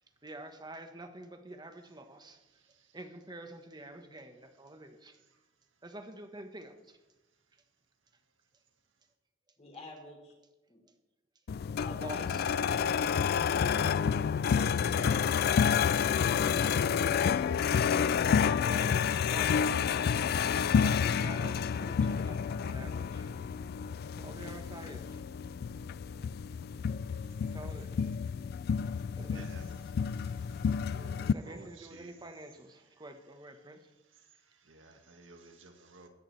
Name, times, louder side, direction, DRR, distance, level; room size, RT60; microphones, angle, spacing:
voice 1, 0.2-2.4 2.9-5.2 5.8-7.0 12.0-12.4 13.8-14.1 14.5-15.4 18.4-20.0 20.7-23.3 24.2-25.2 27.4-28.1 29.2-29.5 31.2-33.8, right 1 dB, 20° right, 6 dB, 1.3 m, -47 dB
voice 2, 9.6-10.3 10.7-10.8 11.8-12.3, left 2 dB, 35° left, 0 dB, 3.5 m, -48 dB
sound 1, 11.5-31.3, left 7 dB, 55° left, 0.3 m, -29 dB
voice 3, 29.3-29.6 30.9-32.1 34.7-36.1, right 2 dB, 80° right, 4 dB, 1.8 m, -52 dB
22.0 x 9.9 x 3.3 m, 1.1 s
head